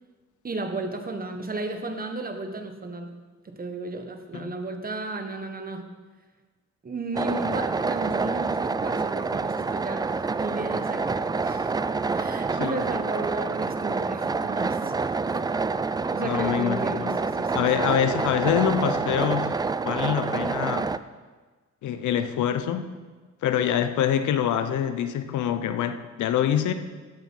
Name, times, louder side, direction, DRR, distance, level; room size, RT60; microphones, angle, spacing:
voice 1, 0.4-3.2 3.4-5.9 6.8-11.7 12.1-14.9 15.3-15.4 16.1-17.9, right 2 dB, 30° right, 6 dB, 1.4 m, -34 dB
sound 1, 7.1-21.0, right 4 dB, 15° right, 0.3 m, -27 dB
voice 2, 16.2-17.2 17.5-20.9 21.8-22.9 23.4-26.7, left 9 dB, 75° left, 10 dB, 0.8 m, -25 dB
15.5 x 7.7 x 4.7 m, 1.4 s
cardioid pair, 90°, 30 cm